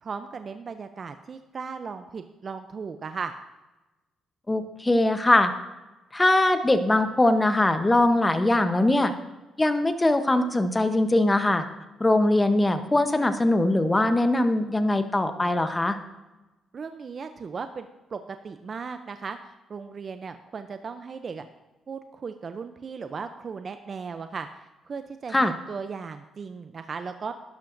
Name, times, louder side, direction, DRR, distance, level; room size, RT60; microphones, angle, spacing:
voice 1, 0.0-3.3 16.7-21.5 21.9-27.3, right 5 dB, 45° right, 8 dB, 0.5 m, -37 dB
voice 2, 4.5-5.5 6.1-9.1 9.6-11.7 12.0-16.0 25.3-25.5, left 1 dB, 15° left, 9 dB, 0.9 m, -21 dB
11.5 x 11.5 x 2.6 m, 1.1 s
cardioid pair, 90°, 0 cm